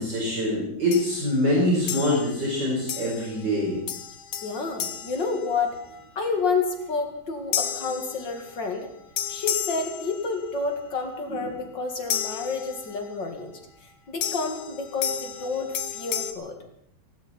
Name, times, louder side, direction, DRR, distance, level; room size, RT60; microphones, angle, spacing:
voice 1, 0.0-3.8, left 1 dB, 55° right, -4 dB, 5.5 m, -24 dB
sound 1, 0.9-1.3 1.9-2.5 2.9-3.5 3.9-6.0 7.5-8.7 9.2-10.6 12.1-13.1 14.2-16.3, left 9 dB, 80° left, 1.9 m, -32 dB
voice 2, 4.4-5.8 6.2-8.9 9.3-13.6 14.1-16.5, left 4 dB, 60° left, 4 dB, 2.8 m, -29 dB
18.0 x 18.0 x 4.4 m, 0.72 s
omnidirectional pair, 2.2 m